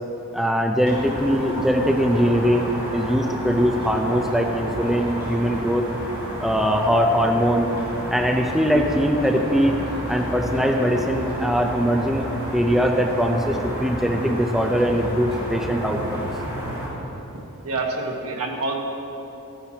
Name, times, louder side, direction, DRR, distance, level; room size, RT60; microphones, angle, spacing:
voice 1, 0.3-5.9 6.4-7.7 8.1-9.8 10.1-16.3, equal, ahead, 2 dB, 0.5 m, -21 dB
sound 1, 0.8-16.9, right 1 dB, 20° right, 2.7 m, -31 dB
voice 2, 17.3-18.7, right 3 dB, 90° right, 0 dB, 1.4 m, -28 dB
14.5 x 10.0 x 2.9 m, 3.0 s
head